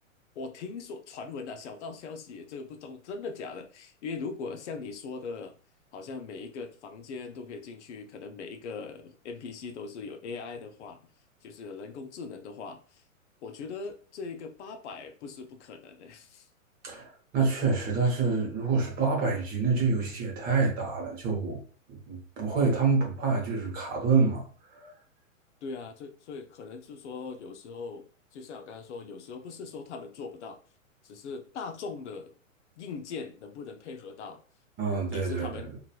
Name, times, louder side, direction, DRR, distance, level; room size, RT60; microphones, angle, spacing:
voice 1, 0.4-5.5 5.9-11.0 11.4-13.0 13.4-16.5 25.6-28.1 28.3-30.6 31.0-32.3 32.8-34.4 35.1-35.7, left 4 dB, 60° left, 0.5 m, -40 dB
voice 2, 16.8-21.6 21.9-24.4 24.7-25.0 34.8-35.6, right 4 dB, 25° right, 0.7 m, -27 dB
2.8 x 2.3 x 2.3 m
hypercardioid pair, 125°, 41 cm